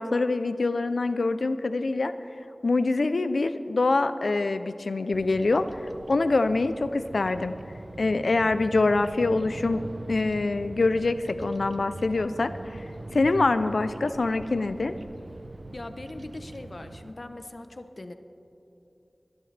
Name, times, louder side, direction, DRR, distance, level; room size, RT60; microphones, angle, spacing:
voice 1, 0.0-2.1 2.6-5.7 6.1-7.6 8.0-12.8 13.1-14.9, left 3 dB, 90° left, 11 dB, 0.5 m, -25 dB
Bird vocalization bird call bird song, 5.1-17.1, right 2 dB, 75° right, 0.5 m, -42 dB
voice 2, 15.7-18.1, left 2 dB, 60° left, 8 dB, 0.8 m, -40 dB
25.0 x 10.5 x 3.3 m, 2.9 s
wide cardioid pair, 40°, 0 cm